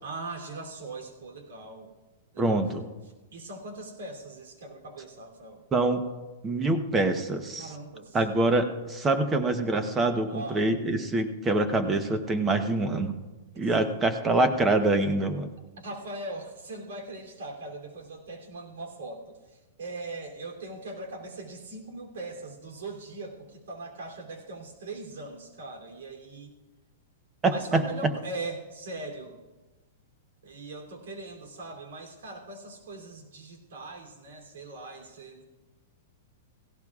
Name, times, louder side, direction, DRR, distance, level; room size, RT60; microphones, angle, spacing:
voice 1, 0.0-1.9 2.3-2.6 3.3-5.6 7.6-8.2 10.3-10.7 15.8-26.5 27.4-29.4 30.4-35.4, right 2 dB, 80° right, 1 dB, 3.0 m, -40 dB
voice 2, 2.4-2.8 5.7-6.0 6.4-7.7 8.1-13.1 13.6-15.5 27.4-27.8, right 2 dB, 15° right, 8 dB, 0.9 m, -25 dB
17.0 x 16.5 x 2.4 m, 1.2 s
supercardioid pair, 155°, 0 cm